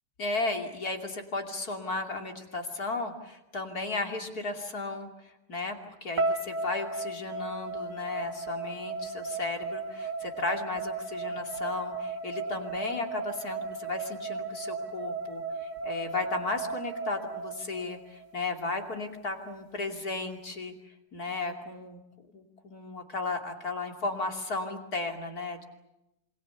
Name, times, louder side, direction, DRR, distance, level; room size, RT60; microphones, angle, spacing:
voice 1, 0.2-22.0 22.3-25.6, left 3 dB, 45° left, 4 dB, 3.1 m, -35 dB
sound 1, 6.2-18.3, right 3 dB, 50° right, 2.7 m, -35 dB
27.5 x 25.5 x 7.1 m, 0.92 s
omnidirectional pair, 2.4 m